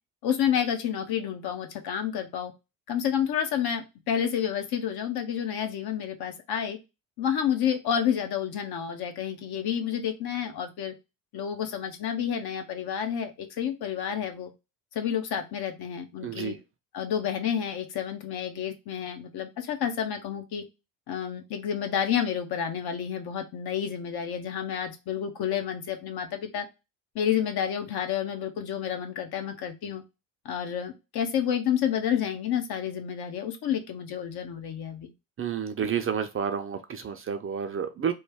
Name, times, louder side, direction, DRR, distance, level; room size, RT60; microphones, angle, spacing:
voice 1, 0.2-2.5 2.9-6.8 7.2-10.9 11.3-14.5 14.9-16.6 16.9-20.6 21.1-26.7 27.1-30.0 30.4-35.1, left 9 dB, 55° left, 0.9 m, -29 dB
voice 2, 16.2-16.6 35.4-38.1, right 7 dB, 30° right, 0.5 m, -30 dB
3.2 x 2.1 x 3.4 m
hypercardioid pair, 65°, 44 cm